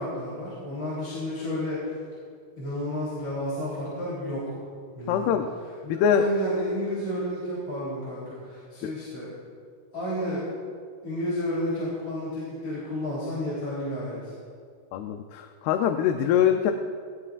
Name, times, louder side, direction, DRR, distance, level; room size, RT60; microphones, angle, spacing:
voice 1, 0.0-1.8 2.6-4.6 5.0-5.3 5.8-9.3 9.9-10.5 11.0-14.3, left 1 dB, 30° left, -8 dB, 3.8 m, -31 dB
voice 2, 5.1-5.5 5.9-6.3 8.8-8.9 14.9-16.7, left 8 dB, 80° left, 5 dB, 2.5 m, -23 dB
19.0 x 16.0 x 2.5 m, 2.1 s
omnidirectional pair, 4.6 m